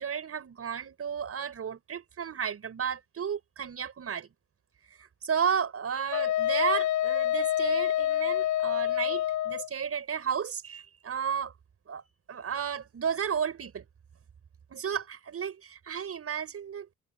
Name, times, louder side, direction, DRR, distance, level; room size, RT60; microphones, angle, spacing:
voice 1, 0.0-4.3 5.2-11.5 11.9-12.0 12.3-13.8 14.7-16.9, right 7 dB, 50° right, 6.5 m, -33 dB
Wind instrument woodwind instrument, 6.1-9.7, left 12 dB, 80° left, 0.7 m, -27 dB
cardioid pair, 90°, 30 cm